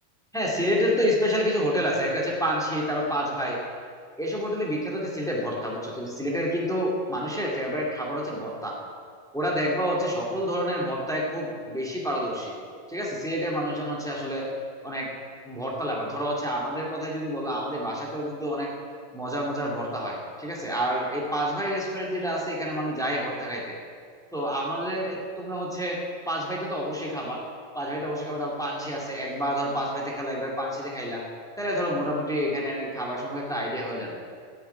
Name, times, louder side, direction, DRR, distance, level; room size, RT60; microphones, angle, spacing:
voice 1, 0.3-3.6 4.2-8.8 9.3-12.5 12.9-14.5 14.8-15.1 15.4-18.7 19.1-23.8 24.3-26.0 26.2-27.4 27.7-31.2 31.6-34.2, equal, ahead, -3 dB, 1.4 m, -28 dB
14.0 x 7.0 x 9.6 m, 2.1 s
omnidirectional pair, 4.1 m